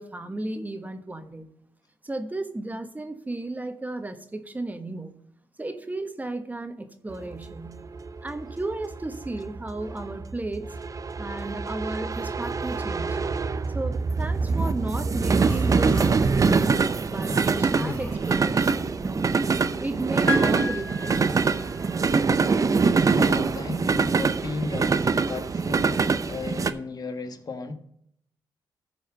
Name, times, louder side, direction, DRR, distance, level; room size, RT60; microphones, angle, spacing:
voice 1, 0.0-1.5 2.0-5.1 5.6-7.9 8.2-10.8 11.2-13.3 13.7-16.7 17.1-19.2 19.8-21.5, right 2 dB, 20° right, 8 dB, 1.2 m, -34 dB
sound 1, 7.2-26.7, right 4 dB, 40° right, 0.7 m, -24 dB
Human voice, 15.4-16.1 17.1-19.0, left 2 dB, 15° left, 1.0 m, -39 dB
Piano, 20.3-22.3 23.5-23.6, left 2 dB, 35° left, 4.2 m, -32 dB
voice 2, 22.9-27.7, left 3 dB, 50° left, 7 dB, 1.4 m, -35 dB
14.0 x 4.9 x 5.4 m, 0.71 s
cardioid pair, 70°, 9 cm